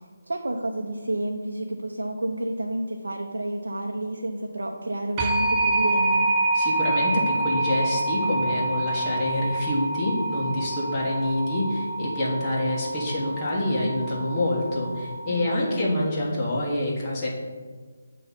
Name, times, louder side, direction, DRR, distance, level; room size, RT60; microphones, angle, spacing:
voice 1, 0.3-6.4 15.3-15.8, right 1 dB, 90° right, 2 dB, 0.6 m, -30 dB
sound 1, 5.2-15.8, right 2 dB, 20° right, 0.6 m, -27 dB
voice 2, 6.5-17.3, left 1 dB, 20° left, -6 dB, 1.5 m, -26 dB
7.8 x 3.1 x 5.5 m, 1.5 s
figure-of-eight pair, 165°, 0 cm